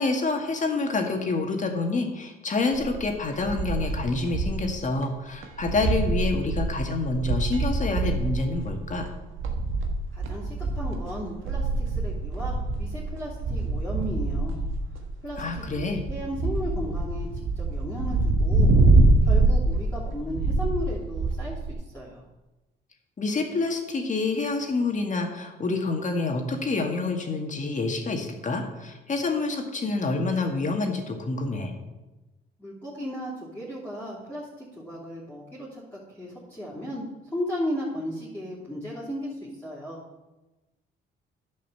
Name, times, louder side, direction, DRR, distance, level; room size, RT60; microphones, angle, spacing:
voice 1, 0.0-9.1 15.4-16.0 23.2-31.7, left 3 dB, 40° left, 4 dB, 1.9 m, -27 dB
sound 1, 2.7-4.7 5.0-5.1 5.4-21.7, right 2 dB, 85° right, 1.4 m, -25 dB
voice 2, 10.1-14.6 15.2-18.7 19.2-22.2 32.6-40.0, equal, 10° left, -8 dB, 3.1 m, -35 dB
10.5 x 5.5 x 6.9 m, 1.1 s
cardioid pair, 90°, 20 cm